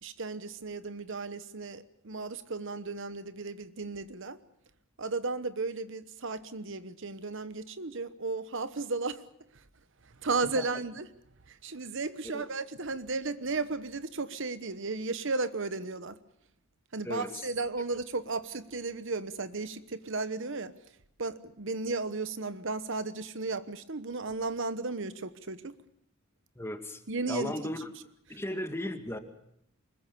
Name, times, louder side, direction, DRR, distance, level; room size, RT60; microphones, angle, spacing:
voice 1, 0.0-4.4 5.0-9.3 9.5-9.7 10.0-11.1 11.5-16.2 16.9-20.7 21.2-25.8 27.1-27.5, right 3 dB, 60° right, 1.1 m, -34 dB
voice 2, 17.0-17.5 26.6-27.0 27.3-27.9 28.3-29.2, left 1 dB, 10° left, 2.2 m, -36 dB
24.5 x 21.5 x 7.0 m
head